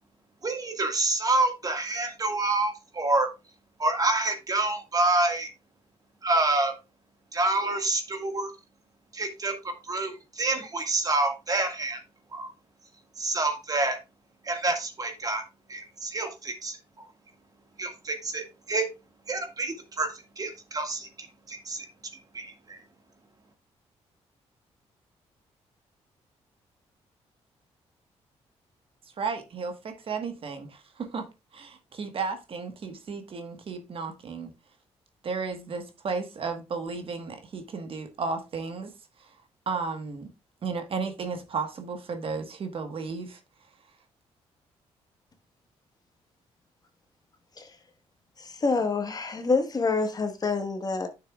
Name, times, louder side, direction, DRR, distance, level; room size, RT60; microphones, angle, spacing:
voice 1, 0.4-3.3 3.8-5.5 6.2-6.7 7.3-8.5 9.1-12.0 12.3-12.5 13.2-14.0 14.4-15.4 15.7-17.1 17.8-18.9 19.3-21.9 22.3-22.8, right 2 dB, 30° right, 1.8 m, -28 dB
voice 2, 29.2-34.5 35.2-38.9 39.7-40.3 40.6-43.4, right 4 dB, 55° right, 1.4 m, -34 dB
voice 3, 48.4-51.1, left 4 dB, 35° left, 1.4 m, -27 dB
9.9 x 6.4 x 2.4 m
cardioid pair, 95°, 12 cm